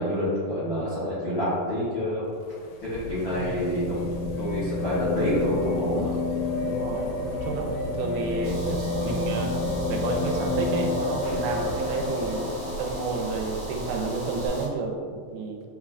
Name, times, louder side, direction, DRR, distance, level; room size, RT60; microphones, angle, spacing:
voice 1, 0.0-2.2 2.8-6.1, equal, 75° left, -11 dB, 1.2 m, -27 dB
sound 1, 2.3-13.3 14.5-14.6, left 2 dB, 90° left, 1.8 m, -30 dB
voice 2, 6.6-9.6 9.9-12.5 12.8-15.6, right 3 dB, 85° right, 2 dB, 2.5 m, -31 dB
sound 2, 8.4-14.7, right 1 dB, 70° right, 1.7 m, -36 dB
6.1 x 2.4 x 3.3 m, 2.1 s
omnidirectional pair, 4.3 m